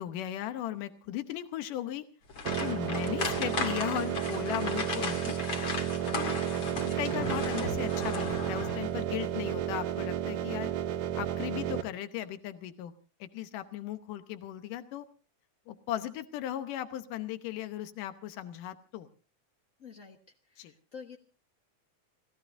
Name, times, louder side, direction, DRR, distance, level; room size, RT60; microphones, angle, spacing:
voice 1, 0.0-2.0 2.6-5.4 6.1-6.4 6.8-10.7 11.2-12.9 13.2-15.1 15.7-19.1 20.6-20.7, left 12 dB, 90° left, 9 dB, 2.6 m, -37 dB
sound 1, 2.3-9.0 9.3-9.5 10.0-10.1, left 4 dB, 40° left, 2.8 m, -36 dB
sound 2, 2.5-11.8, right 10 dB, 85° right, 2.6 m, -32 dB
voice 2, 19.8-20.2 20.5-21.2, left 6 dB, 60° left, 3 dB, 0.8 m, -47 dB
29.5 x 17.0 x 2.6 m, 0.36 s
omnidirectional pair, 3.6 m